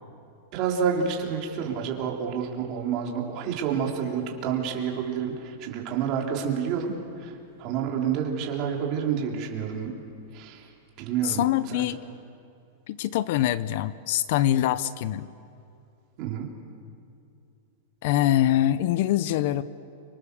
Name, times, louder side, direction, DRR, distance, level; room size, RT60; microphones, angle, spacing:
voice 1, 0.5-9.9 10.3-10.7 11.0-11.8 16.2-16.5, right 7 dB, 35° right, 0 dB, 4.0 m, -29 dB
voice 2, 11.2-12.0 12.9-15.3 18.0-19.6, left 13 dB, 55° left, 16 dB, 0.8 m, -24 dB
29.5 x 26.0 x 7.0 m, 2.5 s
supercardioid pair, 160°, 0 cm